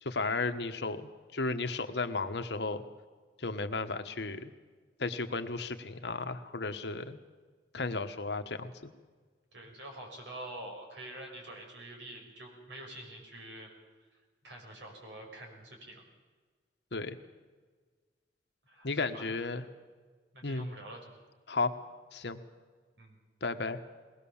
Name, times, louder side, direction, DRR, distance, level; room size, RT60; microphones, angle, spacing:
voice 1, 0.0-2.8 3.4-4.5 5.0-7.2 7.7-8.9 16.9-17.2 18.8-19.6 20.4-20.7 21.5-21.7 22.1-22.4 23.4-23.8, left 3 dB, 70° left, 8 dB, 1.3 m, -34 dB
voice 2, 9.5-13.7 14.4-16.0 18.6-19.3 20.3-21.1 23.0-23.2, right 1 dB, 85° right, 1 dB, 6.0 m, -46 dB
21.5 x 19.0 x 7.2 m, 1.4 s
head